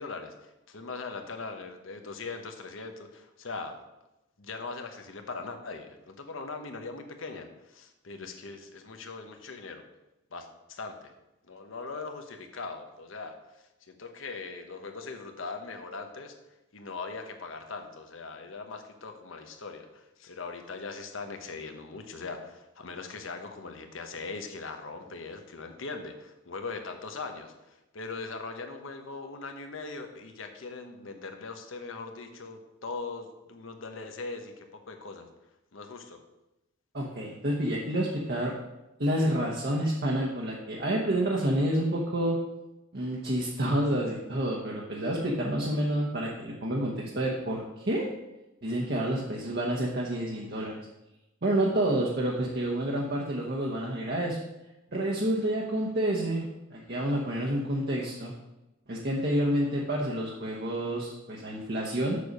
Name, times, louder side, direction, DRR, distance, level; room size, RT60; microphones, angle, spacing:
voice 1, 0.0-3.8 4.4-9.8 10.3-11.1 11.5-16.4 16.7-35.3 35.7-36.2, left 4 dB, 80° left, 6 dB, 1.0 m, -40 dB
voice 2, 36.9-38.5 39.0-42.4 42.9-48.1 48.6-50.8 51.4-54.4 54.9-58.3 58.9-62.2, right 1 dB, 55° right, -3 dB, 1.1 m, -29 dB
6.8 x 6.6 x 5.3 m, 0.96 s
head